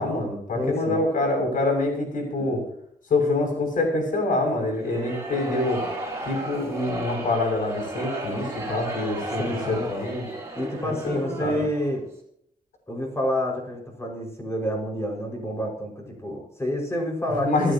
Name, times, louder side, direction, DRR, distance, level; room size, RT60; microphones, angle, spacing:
voice 1, 0.0-2.6 3.1-5.8 6.2-10.3 10.8-11.6 17.4-17.7, left 2 dB, 80° left, 2 dB, 6.8 m, -26 dB
voice 2, 0.5-1.0 2.4-2.5 9.4-9.9 10.5-12.1 12.9-17.7, equal, 20° left, 0 dB, 5.8 m, -28 dB
sound 1, 4.7-12.0, right 1 dB, 20° right, 4.4 m, -34 dB
28.0 x 9.9 x 3.0 m, 0.69 s
cardioid pair, 105°, 14 cm